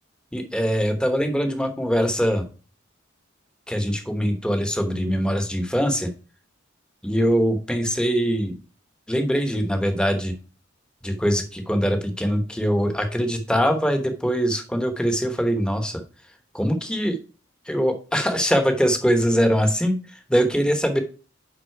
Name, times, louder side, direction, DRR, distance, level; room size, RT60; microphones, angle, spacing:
voice 1, 0.3-2.5 3.7-6.1 7.0-8.5 9.1-10.4 11.0-16.0 16.5-17.2 17.7-21.0, equal, 5° left, 6 dB, 1.0 m, -22 dB
9.5 x 3.8 x 4.5 m, 0.37 s
head